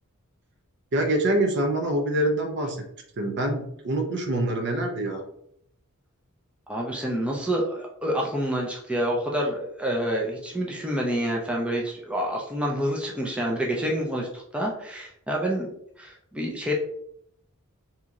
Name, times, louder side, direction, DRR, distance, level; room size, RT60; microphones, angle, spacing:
voice 1, 0.9-2.8 3.2-5.2, right 1 dB, 50° right, 4 dB, 0.7 m, -25 dB
voice 2, 6.7-15.7 16.0-16.7, equal, 5° right, -2 dB, 0.5 m, -28 dB
2.9 x 2.7 x 3.6 m, 0.70 s
head